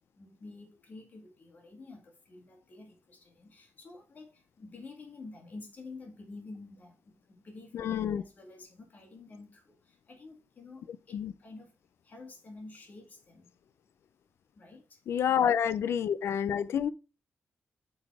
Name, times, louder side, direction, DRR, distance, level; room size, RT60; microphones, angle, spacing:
voice 1, 0.2-7.0 7.3-11.7 12.0-13.5 14.6-15.0, left 3 dB, 40° left, 2.0 m, -49 dB
voice 2, 7.7-8.2 11.1-11.3 15.1-16.9, left 8 dB, 75° left, 0.5 m, -28 dB
8.8 x 4.1 x 4.7 m
wide cardioid pair, 165°, 4 cm